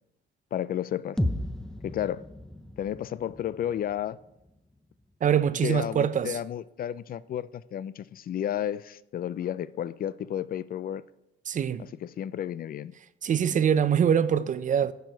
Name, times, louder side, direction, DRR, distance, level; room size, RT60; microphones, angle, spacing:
voice 1, 0.5-1.2 1.8-2.2 2.8-4.2 5.6-11.0 11.8-12.9, left 10 dB, 50° left, 0.4 m, -32 dB
sound 1, 1.2-5.1, left 1 dB, 5° left, 0.6 m, -35 dB
voice 2, 5.2-6.4 11.5-11.8 13.2-14.9, right 8 dB, 40° right, 0.5 m, -24 dB
10.5 x 4.6 x 5.3 m
cardioid pair, 90°, 20 cm